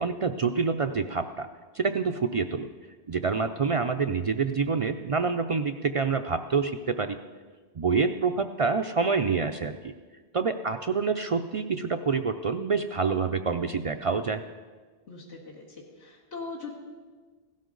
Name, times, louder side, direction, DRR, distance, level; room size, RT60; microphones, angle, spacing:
voice 1, 0.0-1.5 1.7-2.7 3.1-7.2 7.8-9.9 10.3-14.4, right 5 dB, 55° right, 7 dB, 0.3 m, -27 dB
voice 2, 15.1-16.7, left 4 dB, 90° left, -5 dB, 2.0 m, -41 dB
16.5 x 12.5 x 3.9 m, 1.4 s
omnidirectional pair, 1.1 m